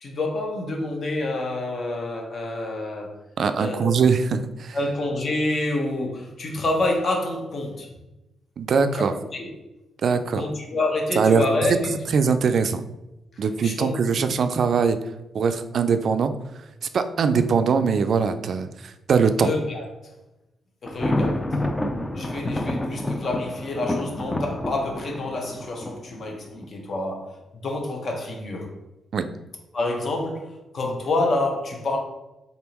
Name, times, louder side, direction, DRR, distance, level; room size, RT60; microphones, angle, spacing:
voice 1, 0.0-3.1 3.6-4.0 4.7-7.9 8.9-9.5 10.4-11.7 13.6-14.0 19.4-19.8 20.8-21.4 22.1-27.3 27.6-28.7 29.7-30.5 30.7-32.0, left 2 dB, 50° left, 1 dB, 1.0 m, -27 dB
voice 2, 3.4-4.8 8.6-9.1 10.0-10.4 11.2-11.4 12.1-12.8 13.4-15.0 15.3-16.3 16.9-19.5 29.1-29.2, right 5 dB, 60° right, 9 dB, 0.3 m, -21 dB
Thunder, 20.9-26.7, left 1 dB, 15° left, 0.4 m, -28 dB
4.0 x 3.5 x 2.9 m, 0.98 s
cardioid pair, 90°, 0 cm